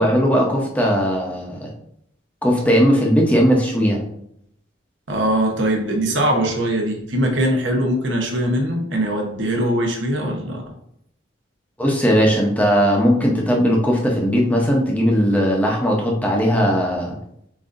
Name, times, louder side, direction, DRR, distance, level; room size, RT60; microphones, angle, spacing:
voice 1, 0.0-1.7 2.4-4.0 11.8-17.1, equal, 10° left, -1 dB, 0.7 m, -18 dB
voice 2, 5.1-10.7, right 1 dB, 75° right, 2 dB, 1.0 m, -21 dB
7.4 x 2.7 x 2.6 m, 0.73 s
head